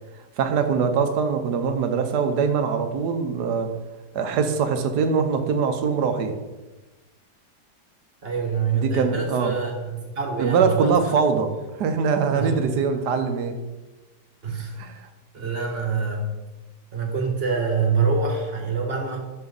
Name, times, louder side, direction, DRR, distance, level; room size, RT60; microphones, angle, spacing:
voice 1, 0.4-3.7 4.1-6.4 8.8-9.5 10.4-11.5 11.8-13.6 14.8-15.1, right 6 dB, 75° right, 8 dB, 1.3 m, -22 dB
voice 2, 8.2-10.9 12.3-12.6 14.4-14.8 15.3-16.2 16.9-19.2, right 5 dB, 40° right, 2 dB, 1.4 m, -25 dB
11.5 x 4.5 x 3.9 m, 1.2 s
omnidirectional pair, 1.8 m